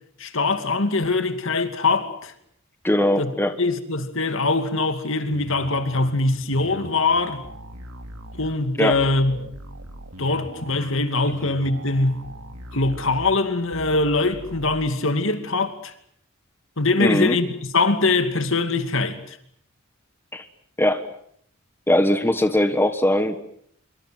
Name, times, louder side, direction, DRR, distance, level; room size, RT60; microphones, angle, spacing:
voice 1, 0.2-2.3 3.2-3.3 3.6-7.4 8.4-9.5 10.2-12.2 12.7-15.9 16.8-19.4, left 3 dB, 65° left, 2.6 m, -22 dB
voice 2, 2.8-3.5 8.8-9.0 17.0-17.4 20.3-20.5 20.8-21.0 21.9-23.4, left 1 dB, 10° left, 1.4 m, -20 dB
sound 1, 5.3-14.9, right 1 dB, 85° right, 3.6 m, -40 dB
26.0 x 24.0 x 7.7 m
head